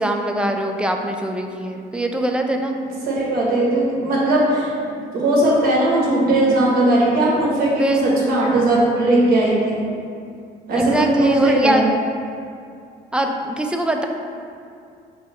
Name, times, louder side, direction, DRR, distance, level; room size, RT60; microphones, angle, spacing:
voice 1, 0.0-2.8 7.8-8.0 10.8-11.9 13.1-14.1, right 1 dB, 5° right, 3 dB, 0.3 m, -22 dB
voice 2, 3.0-4.7 5.1-9.8 10.7-11.8, right 1 dB, 60° right, -5 dB, 1.4 m, -18 dB
5.5 x 2.1 x 4.3 m, 2.4 s
cardioid pair, 110°, 17 cm